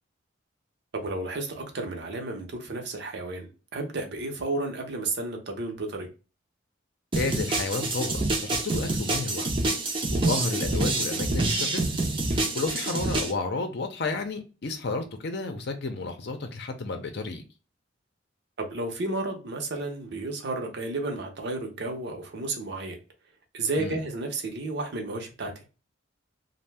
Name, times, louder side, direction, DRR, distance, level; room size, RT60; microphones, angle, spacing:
voice 1, 0.9-6.1 10.7-10.8 18.6-23.0 23.5-25.5, right 2 dB, 60° right, 0.7 m, -32 dB
voice 2, 7.1-9.5 10.1-12.0 12.3-17.4 23.8-24.0, left 3 dB, 60° left, 0.6 m, -32 dB
sound 1, 7.1-13.3, right 2 dB, 25° right, 0.5 m, -27 dB
2.6 x 2.1 x 3.2 m
head